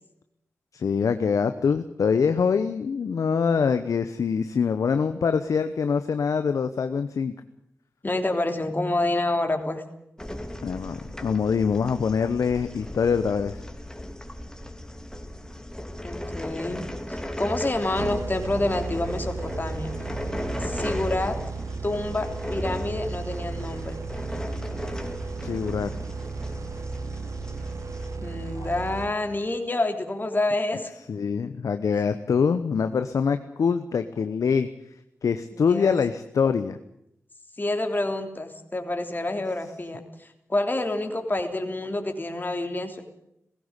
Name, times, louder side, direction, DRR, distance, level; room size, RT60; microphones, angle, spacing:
voice 1, 0.7-7.3 10.6-13.6 25.4-25.9 28.6-28.7 31.1-34.7 35.2-36.8, left 6 dB, 75° left, 10 dB, 0.9 m, -24 dB
voice 2, 8.0-9.8 16.0-19.9 20.6-21.3 21.8-24.0 28.2-30.9 35.5-36.0 37.6-43.0, left 2 dB, 35° left, 5 dB, 3.3 m, -28 dB
sound 1, 10.2-28.2, left 1 dB, 10° left, 3.1 m, -36 dB
sound 2, 18.0-29.6, right 4 dB, 65° right, 1.6 m, -35 dB
17.5 x 15.5 x 9.8 m, 0.79 s
cardioid pair, 40°, 6 cm